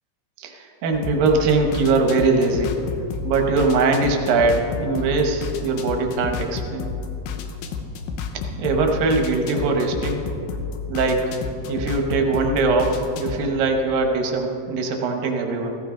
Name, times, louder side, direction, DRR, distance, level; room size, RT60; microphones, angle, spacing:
voice 1, 0.4-2.7 3.2-6.9 8.6-10.2 10.9-11.3 11.7-15.8, right 3 dB, 70° right, 3 dB, 2.3 m, -21 dB
sound 1, 0.9-13.5, left 5 dB, 80° left, 3.2 m, -31 dB
16.0 x 15.5 x 3.8 m, 2.7 s
omnidirectional pair, 5.3 m